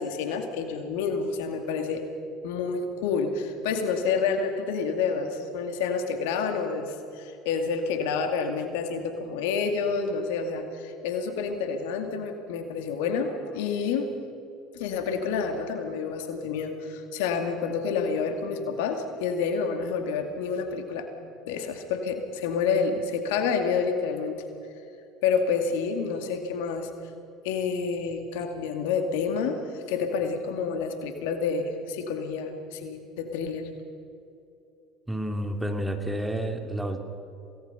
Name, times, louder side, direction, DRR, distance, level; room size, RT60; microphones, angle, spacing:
voice 1, 0.0-2.0 2.4-14.1 14.7-21.1 21.5-24.4 25.2-26.9 27.4-33.7, left 5 dB, 75° left, 6 dB, 2.3 m, -28 dB
voice 2, 35.1-37.0, right 1 dB, 10° right, 5 dB, 2.7 m, -30 dB
27.0 x 18.5 x 5.7 m, 2.7 s
hypercardioid pair, 70°, 0 cm